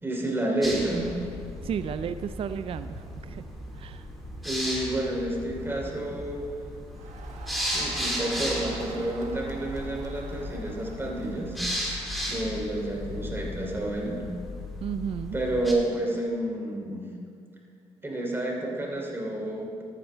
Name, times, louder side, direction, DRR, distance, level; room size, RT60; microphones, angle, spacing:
voice 1, 0.0-1.1 4.4-6.4 7.7-11.6 12.3-14.2 15.3-17.1 18.0-19.8, right 1 dB, 20° right, -1 dB, 3.0 m, -30 dB
sound 1, 0.6-15.7, equal, ahead, 3.1 m, -35 dB
voice 2, 1.6-3.4 3.8-4.0 14.8-15.4, right 8 dB, 50° right, 11 dB, 0.4 m, -33 dB
Crowd, 6.9-11.8, right 4 dB, 75° right, 1.4 m, -45 dB
14.0 x 10.0 x 3.4 m, 2.3 s
cardioid pair, 75°, 12 cm